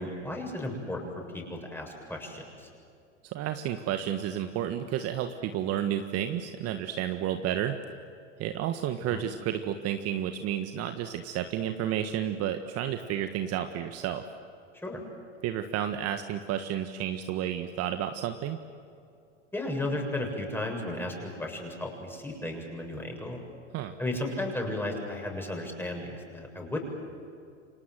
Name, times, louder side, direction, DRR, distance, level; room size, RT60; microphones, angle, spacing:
voice 1, 0.0-2.7 9.1-9.3 14.8-15.0 19.5-23.4 24.0-26.8, left 1 dB, 5° left, 1 dB, 7.3 m, -34 dB
voice 2, 3.2-7.8 8.4-14.2 15.4-18.6 23.7-24.0, right 10 dB, 40° right, 7 dB, 1.6 m, -31 dB
29.5 x 26.0 x 7.8 m, 2.5 s
hypercardioid pair, 90°, 36 cm